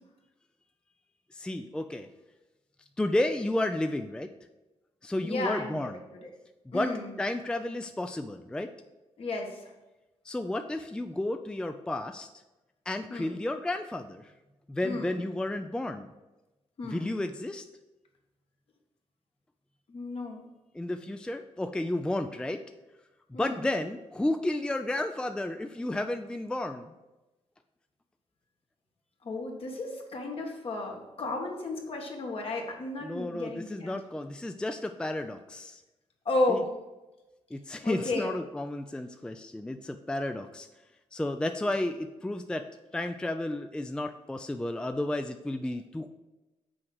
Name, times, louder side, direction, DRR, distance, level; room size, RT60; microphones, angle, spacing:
voice 1, 1.3-2.1 3.0-4.3 5.0-6.0 6.7-6.9 7.2-8.7 10.2-12.3 12.9-14.3 14.7-16.1 16.8-17.6 20.7-22.6 23.3-26.9 33.0-35.8 36.5-36.6 37.5-40.7 41.1-42.7 42.9-46.1, left 1 dB, 10° left, 7 dB, 0.4 m, -32 dB
voice 2, 5.2-5.9 6.7-7.1 9.2-9.7 13.1-13.4 14.8-15.2 16.8-17.1 19.9-20.4 23.3-23.7 29.2-34.0 36.2-36.7 37.8-38.3, left 2 dB, 60° left, 1 dB, 1.6 m, -33 dB
6.3 x 4.6 x 6.0 m, 1.0 s
cardioid pair, 80°, 11 cm